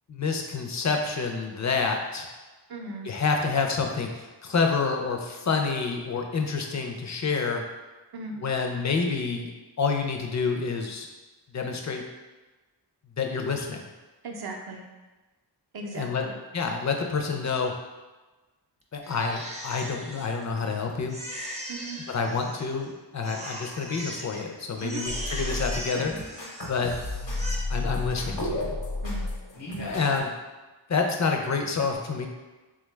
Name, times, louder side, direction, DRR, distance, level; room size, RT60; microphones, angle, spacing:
voice 1, 0.1-2.3 3.0-7.6 8.4-9.5 9.8-11.1 11.5-12.0 13.2-13.8 15.9-16.2 16.5-17.7 18.9-21.2 22.1-26.3 26.7-26.9 27.7-28.7 29.8-30.3 30.9-32.3, left 4 dB, 45° left, 3 dB, 0.4 m, -28 dB
voice 2, 2.7-3.1 8.1-8.3 14.2-14.8 15.7-16.4 21.7-22.0 24.8-25.0 29.0-29.3 29.7-29.9, right 3 dB, 60° right, 1 dB, 0.6 m, -37 dB
Crying sobbing, 19.0-20.7 21.1-22.9 23.2-24.4 24.8-26.9 27.2-27.6, equal, 15° right, 0.5 m, -39 dB
sound 1, 25.0-30.2, left 2 dB, 85° left, 0.9 m, -32 dB
3.6 x 2.3 x 3.1 m, 1.2 s
wide cardioid pair, 110°, 43 cm